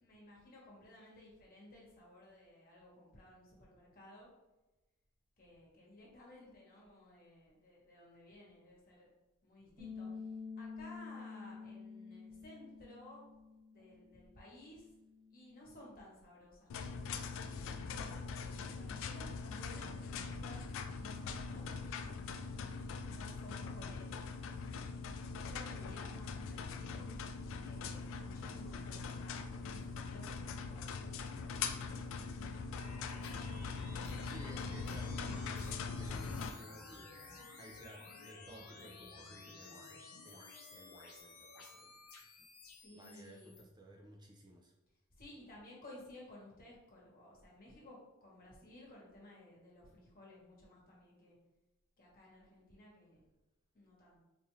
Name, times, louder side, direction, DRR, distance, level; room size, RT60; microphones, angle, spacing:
voice 1, 0.0-4.3 5.4-9.1 9.4-13.2 13.7-14.9 15.3-17.8 18.3-20.6 21.0-21.8 22.5-24.2 25.5-27.1 27.6-33.0 42.8-43.6 45.2-51.4 52.0-53.2 53.7-54.2, left 1 dB, 45° left, -4 dB, 1.2 m, -57 dB
Bass guitar, 9.8-16.0, left 5 dB, 40° right, 1.4 m, -50 dB
sound 1, 16.7-36.5, left 5 dB, 65° left, 0.3 m, -42 dB
sound 2, 32.7-43.6, left 3 dB, 80° left, 0.7 m, -54 dB
voice 2, 34.2-41.9 42.9-44.7, right 1 dB, 20° right, 0 dB, 0.4 m, -56 dB
3.8 x 2.5 x 3.0 m, 1.1 s
head